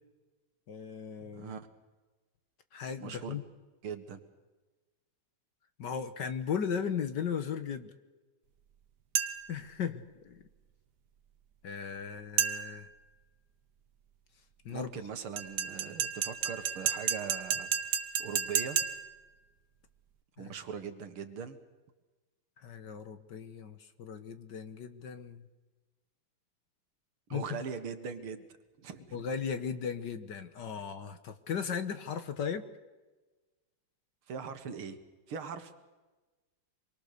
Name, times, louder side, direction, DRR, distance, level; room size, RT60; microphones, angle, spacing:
voice 1, 0.7-1.5 2.7-3.4 5.8-7.9 9.5-10.4 11.6-12.9 14.7-14.9 20.4-20.5 22.6-25.4 27.3-27.6 29.1-32.7, left 7 dB, 60° left, 10 dB, 1.7 m, -37 dB
voice 2, 1.2-1.7 3.0-3.4 3.8-4.2 14.7-18.8 20.4-21.6 27.3-28.4 28.8-29.2 34.3-35.0 35.3-35.8, right 6 dB, 75° right, 8 dB, 2.4 m, -41 dB
sound 1, 9.1-9.6 12.4-12.9 15.4-19.2, right 8 dB, 55° right, 1.5 m, -32 dB
25.5 x 23.0 x 6.7 m, 1.2 s
omnidirectional pair, 2.4 m